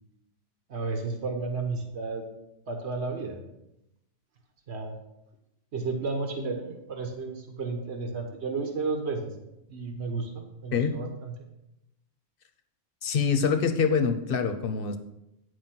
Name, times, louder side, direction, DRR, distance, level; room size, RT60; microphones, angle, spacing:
voice 1, 0.7-2.2 2.7-3.4 4.7-5.0 5.7-9.3 9.7-11.3, right 3 dB, 65° right, 4 dB, 1.5 m, -32 dB
voice 2, 13.0-15.0, left 6 dB, 55° left, 8 dB, 0.9 m, -25 dB
9.4 x 4.9 x 6.0 m, 0.88 s
omnidirectional pair, 1.2 m